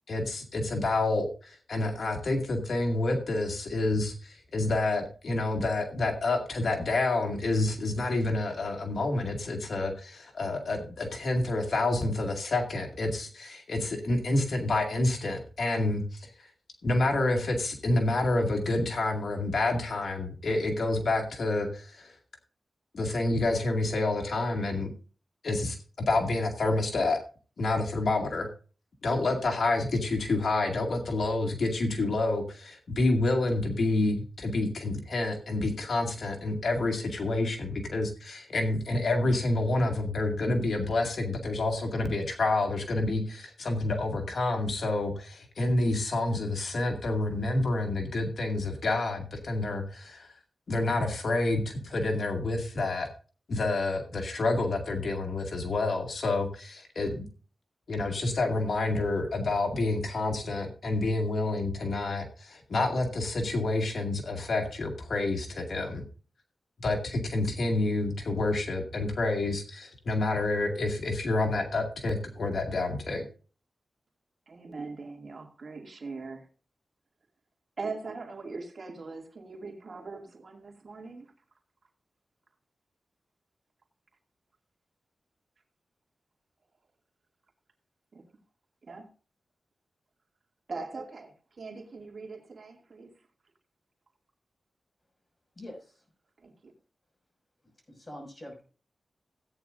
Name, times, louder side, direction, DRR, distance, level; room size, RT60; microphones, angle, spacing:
voice 1, 0.1-16.3 16.8-22.2 22.9-24.9 25.4-27.2 27.6-28.5 29.0-50.3 50.7-53.1 53.5-57.3 57.9-66.0 66.8-73.2, left 2 dB, 70° left, 2.1 m, -28 dB
voice 2, 74.5-76.5 77.8-81.3 88.1-88.2 88.9-89.0 90.7-93.1 96.4-96.7, right 4 dB, 60° right, 2.3 m, -41 dB
voice 3, 95.6-96.0 97.9-98.6, left 1 dB, 30° left, 6.1 m, -44 dB
16.0 x 9.3 x 2.6 m
cardioid pair, 70°, 0 cm